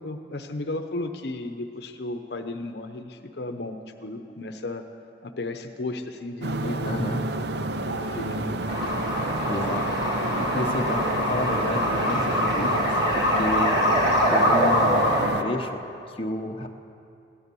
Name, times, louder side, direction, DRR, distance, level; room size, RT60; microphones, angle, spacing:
voice 1, 0.0-4.8 5.2-7.2 7.6-8.6, left 2 dB, 65° left, 6 dB, 0.8 m, -34 dB
sound 1, 6.4-15.4, right 2 dB, 65° right, 0.6 m, -30 dB
voice 2, 6.9-7.2 9.5-9.8 10.4-13.8 14.3-16.7, left 1 dB, 30° left, 2 dB, 0.9 m, -31 dB
sound 2, 8.7-15.3, equal, 25° right, 3.8 m, -24 dB
16.5 x 11.0 x 6.9 m, 2.6 s
head